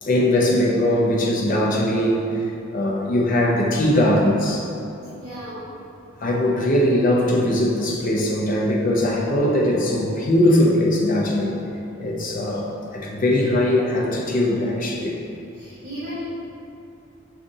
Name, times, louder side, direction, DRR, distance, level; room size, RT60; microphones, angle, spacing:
voice 1, 0.0-2.3 2.7-4.7 6.2-11.6 12.0-12.7 12.9-15.2, left 1 dB, 40° left, -2 dB, 0.5 m, -20 dB
voice 2, 5.1-5.6 12.1-12.2 15.5-16.2, equal, 40° right, -15 dB, 1.2 m, -35 dB
6.4 x 2.5 x 2.6 m, 2.7 s
head